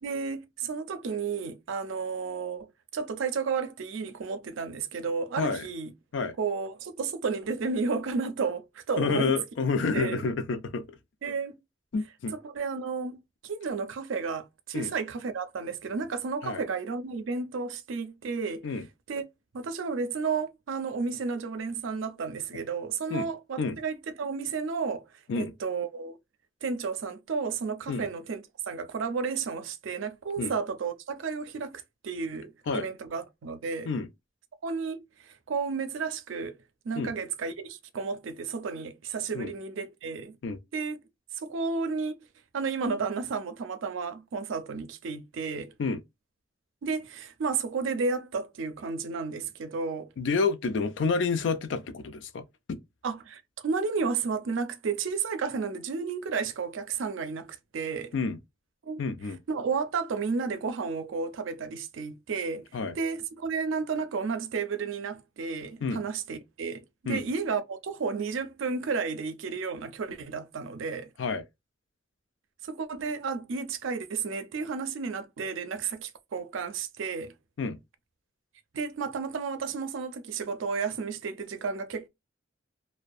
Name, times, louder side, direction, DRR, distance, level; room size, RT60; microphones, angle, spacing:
voice 1, 0.0-2.7 2.9-5.9 6.4-9.4 9.9-10.2 11.2-11.6 12.4-18.7 19.1-19.2 19.5-25.1 25.4-26.2 26.6-33.9 34.6-36.6 36.8-40.4 40.7-41.0 41.3-42.1 42.5-45.7 46.8-50.1 53.0-58.1 58.8-59.0 59.5-62.6 63.0-71.1 72.6-77.3 78.7-82.1, right 5 dB, 85° right, 0.4 m, -32 dB
voice 2, 9.0-11.0 11.9-12.3 14.7-14.9 16.4-16.6 18.6-18.9 23.1-23.3 23.6-23.8 25.3-25.5 27.9-28.1 30.4-30.5 32.7-32.9 33.9-34.1 37.0-37.1 39.3-39.5 40.4-40.6 45.8-46.0 50.2-52.4 52.7-52.8 58.1-58.4 59.0-59.4 62.7-63.0 65.8-66.0 67.1-67.2 71.2-71.4 77.6-77.8, left 4 dB, 75° left, 0.4 m, -29 dB
2.6 x 2.1 x 2.2 m
head